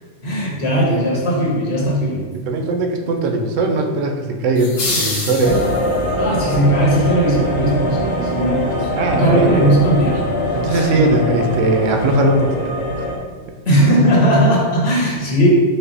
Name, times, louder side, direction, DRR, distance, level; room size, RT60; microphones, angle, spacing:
voice 1, 0.2-2.2 6.2-10.2 10.7-11.0 13.6-15.5, right 1 dB, 60° left, -4 dB, 1.3 m, -17 dB
voice 2, 2.3-5.6 8.9-9.7 10.5-12.6, right 2 dB, 80° right, 3 dB, 0.9 m, -19 dB
sound 1, 4.5-6.1, left 2 dB, 85° left, 1.3 m, -25 dB
sound 2, 5.4-13.2, equal, 40° left, 0.4 m, -22 dB
5.6 x 2.0 x 3.8 m, 1.5 s
omnidirectional pair, 1.3 m